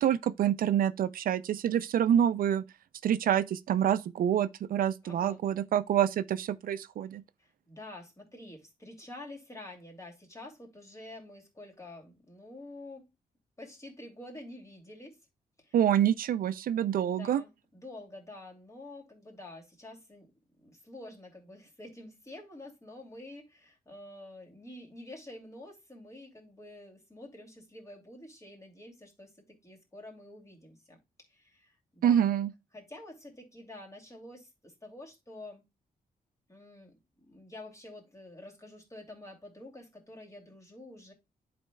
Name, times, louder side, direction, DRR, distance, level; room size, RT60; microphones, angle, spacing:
voice 1, 0.0-2.6 3.0-7.2 15.7-17.4 32.0-32.5, right 10 dB, 75° right, 0.4 m, -27 dB
voice 2, 5.0-5.4 7.4-13.1 13.6-15.2 15.6-15.8 17.0-20.3 20.6-32.3 32.7-35.6 36.5-41.1, left 1 dB, 20° left, 2.6 m, -48 dB
11.0 x 4.3 x 2.2 m
cardioid pair, 100°, 15 cm